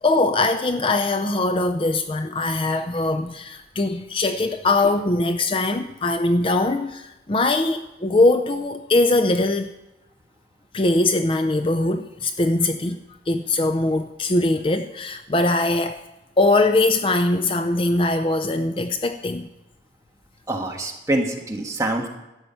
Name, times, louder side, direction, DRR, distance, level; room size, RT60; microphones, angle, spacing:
voice 1, 0.0-9.7 10.7-13.0 13.3-16.0 16.4-19.5, left 2 dB, 30° left, 8 dB, 0.5 m, -21 dB
voice 2, 20.5-22.1, right 1 dB, 20° right, 2 dB, 1.4 m, -25 dB
12.5 x 9.0 x 5.6 m, 0.97 s
head